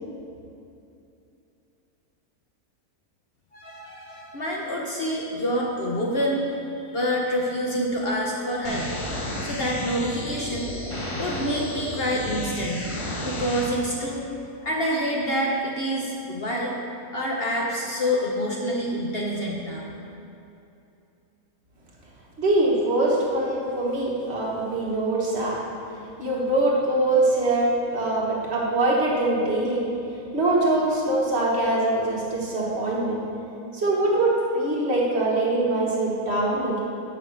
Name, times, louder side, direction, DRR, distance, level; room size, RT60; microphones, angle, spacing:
voice 1, 3.5-6.6 6.9-8.9 9.4-14.2 14.6-16.7 17.1-19.9, equal, 45° left, -3 dB, 1.0 m, -27 dB
sound 1, 8.6-13.6, left 1 dB, 20° left, 1.1 m, -32 dB
voice 2, 22.4-25.6 26.2-29.9 30.3-33.2 33.7-36.8, right 2 dB, 45° right, -5 dB, 1.6 m, -23 dB
7.6 x 5.6 x 6.4 m, 2.7 s
omnidirectional pair, 1.6 m